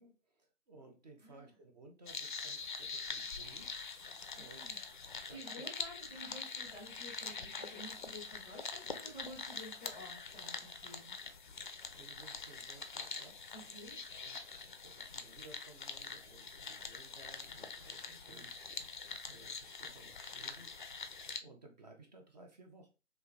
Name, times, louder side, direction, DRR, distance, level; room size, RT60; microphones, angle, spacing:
voice 1, 0.0-4.0 4.3-4.8 5.1-5.7 12.0-13.3 14.1-18.5 18.8-22.9, right 2 dB, 35° right, 3 dB, 0.8 m, -58 dB
sound 1, 2.1-21.4, left 5 dB, 45° left, 0.4 m, -45 dB
voice 2, 4.0-4.8 5.1-11.1 13.5-14.0 17.8-18.5, equal, 5° right, -6 dB, 0.7 m, -52 dB
3.3 x 3.0 x 3.6 m, 0.31 s
figure-of-eight pair, 145°, 37 cm